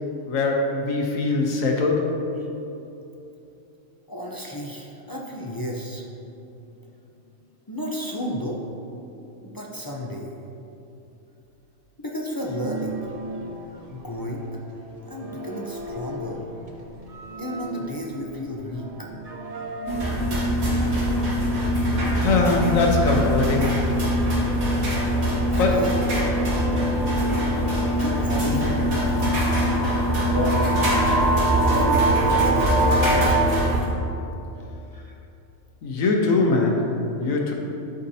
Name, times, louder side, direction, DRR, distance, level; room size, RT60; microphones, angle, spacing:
voice 1, 0.3-2.3 22.2-23.8 25.6-25.8 28.4-28.7 30.2-30.8 35.8-37.5, left 3 dB, 75° left, 1 dB, 1.3 m, -22 dB
voice 2, 4.1-6.0 7.7-8.6 9.4-10.3 12.0-13.0 13.9-14.5 15.1-16.4 17.4-19.1 21.3-22.3 25.5-26.0 27.8-29.2 31.6-33.4 34.9-35.2, equal, 35° left, -2 dB, 0.3 m, -33 dB
sound 1, 12.4-20.2, right 2 dB, 45° right, 0.5 m, -37 dB
sound 2, 19.9-33.8, equal, 90° right, 2.2 m, -23 dB
sound 3, 24.4-33.4, right 2 dB, 70° right, 1.6 m, -26 dB
12.5 x 5.2 x 2.8 m, 2.9 s
omnidirectional pair, 1.4 m